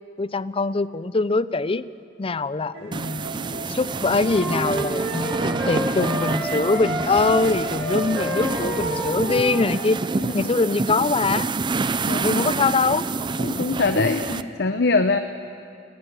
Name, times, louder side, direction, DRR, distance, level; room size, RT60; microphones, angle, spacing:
voice 1, 0.2-1.8 2.2-10.0 10.3-11.5 12.2-13.0, left 3 dB, 30° left, 17 dB, 0.5 m, -23 dB
sound 1, 2.7-8.2, right 2 dB, 65° right, 2.2 m, -39 dB
sound 2, 2.9-14.4, right 3 dB, 25° right, 0.4 m, -28 dB
sound 3, 4.1-9.9, equal, ahead, 5.9 m, -29 dB
voice 2, 12.1-12.4 13.4-15.2, left 3 dB, 60° left, 8 dB, 0.8 m, -22 dB
20.0 x 16.5 x 9.6 m, 2.5 s
head